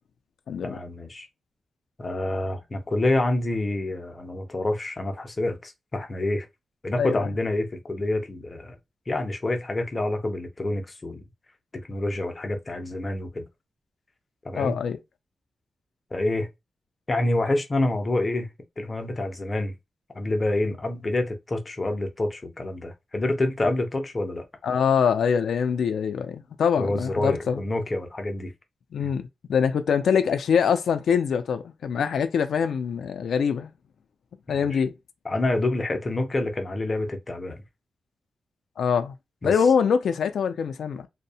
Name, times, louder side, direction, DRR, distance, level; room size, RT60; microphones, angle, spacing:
voice 1, 0.6-1.3 2.0-6.5 6.8-8.8 9.1-11.2 11.7-13.4 14.4-14.8 16.1-16.5 17.1-18.5 18.8-19.7 20.1-24.4 26.8-28.5 29.0-29.1 34.5-34.8 35.2-37.6 39.4-39.5, left 2 dB, 25° left, 0.4 m, -27 dB
voice 2, 7.0-7.3 14.6-15.0 24.6-27.6 28.9-33.7 34.5-35.0 38.8-39.1 39.4-41.1, left 7 dB, 90° left, 0.3 m, -24 dB
2.6 x 2.0 x 2.7 m
wide cardioid pair, 165°, 0 cm